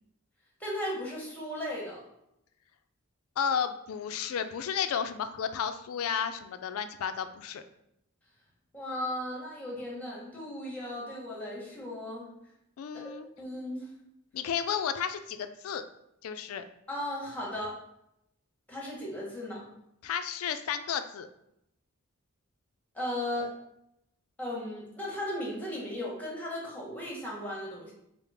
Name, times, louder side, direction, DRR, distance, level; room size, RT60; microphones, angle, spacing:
voice 1, 0.6-2.0 8.7-12.3 12.9-13.9 16.9-17.7 18.7-19.7 22.9-23.5 24.4-27.9, left 1 dB, 10° left, -4 dB, 1.0 m, -36 dB
voice 2, 3.4-7.6 12.8-13.3 14.3-15.8 16.2-16.6 20.0-21.3, left 7 dB, 75° left, 10 dB, 0.3 m, -32 dB
4.8 x 2.0 x 3.3 m, 0.80 s
head